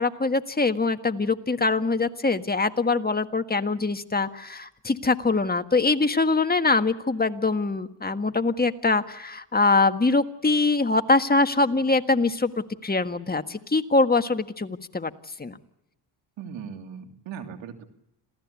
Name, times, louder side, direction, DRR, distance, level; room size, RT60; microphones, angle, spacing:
voice 1, 0.0-12.5 12.8-15.1 15.4-15.6, left 3 dB, 20° left, 8 dB, 1.7 m, -23 dB
voice 2, 16.4-17.8, right 7 dB, 80° right, 6 dB, 3.0 m, -38 dB
27.0 x 16.5 x 8.4 m, 0.84 s
cardioid pair, 70°, 44 cm